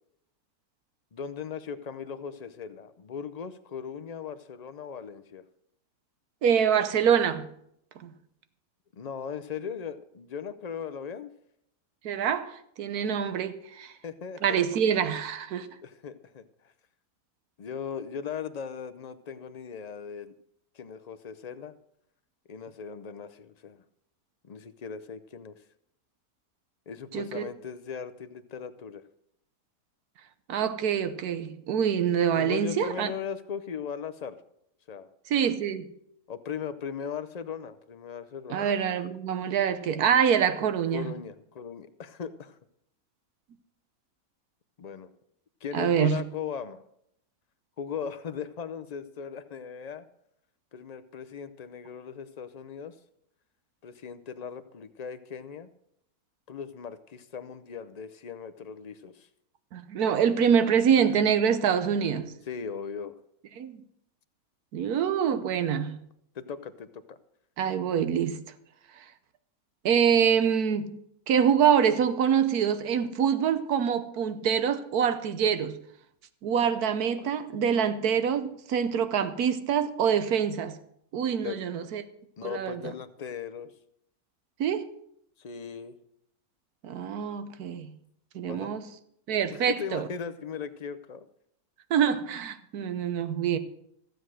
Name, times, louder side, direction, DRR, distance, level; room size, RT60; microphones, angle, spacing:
voice 1, 1.1-5.4 8.9-11.3 14.0-14.6 15.8-16.7 17.6-20.3 20.7-21.8 22.5-23.8 24.4-25.6 26.9-29.0 32.3-34.4 34.9-35.1 36.3-38.7 40.9-42.6 44.8-45.1 45.6-46.8 47.8-50.0 50.7-52.9 53.8-55.7 56.5-59.3 62.5-63.2 66.3-67.2 77.2-77.3 81.4-81.6 82.4-83.7 85.4-86.0 88.5-88.7 89.5-91.3, left 7 dB, 65° left, 0.4 m, -38 dB
voice 2, 6.4-7.5 8.0-8.1 12.0-13.9 14.4-15.7 27.1-27.5 30.5-33.1 35.3-35.9 38.5-41.1 45.7-46.2 59.7-62.3 63.6-63.8 64.7-66.0 67.6-68.4 69.8-71.0 71.3-75.8 76.4-80.7 81.1-82.0 82.4-82.8 84.6-84.9 86.8-87.9 88.3-88.8 89.3-90.1 91.9-93.6, right 8 dB, 80° right, 1.4 m, -25 dB
14.5 x 7.9 x 6.3 m
omnidirectional pair, 1.6 m